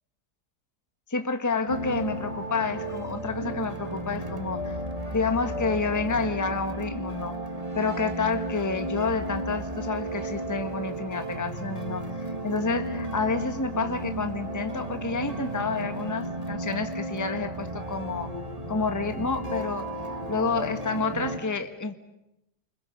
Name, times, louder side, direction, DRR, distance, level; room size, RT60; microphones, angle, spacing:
voice 1, 1.1-4.8 5.1-7.4 7.7-18.3 18.7-19.9 20.3-21.9, left 4 dB, 10° left, 8 dB, 1.4 m, -29 dB
sound 1, 1.7-21.4, right 1 dB, 20° right, 1.9 m, -34 dB
29.5 x 25.0 x 7.0 m, 0.88 s
omnidirectional pair, 1.7 m